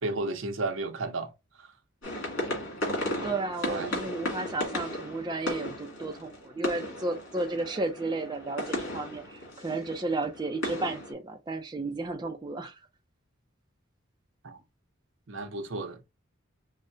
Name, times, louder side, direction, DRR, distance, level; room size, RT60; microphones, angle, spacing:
voice 1, 0.0-1.7 3.7-4.0 14.4-14.6 15.3-16.0, right 2 dB, 65° right, 0.6 m, -33 dB
sound 1, 2.0-11.1, left 1 dB, 65° left, 2.2 m, -35 dB
voice 2, 3.2-12.8, right 2 dB, 20° right, 0.4 m, -33 dB
5.4 x 2.1 x 2.5 m
head